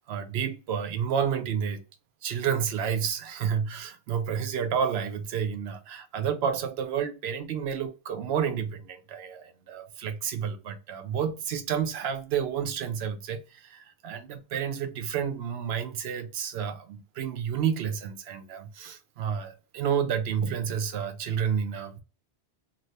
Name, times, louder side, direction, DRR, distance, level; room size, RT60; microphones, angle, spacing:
voice 1, 0.0-1.8 2.2-22.0, right 7 dB, 75° right, 0.8 m, -30 dB
2.6 x 2.4 x 3.2 m
omnidirectional pair, 1.1 m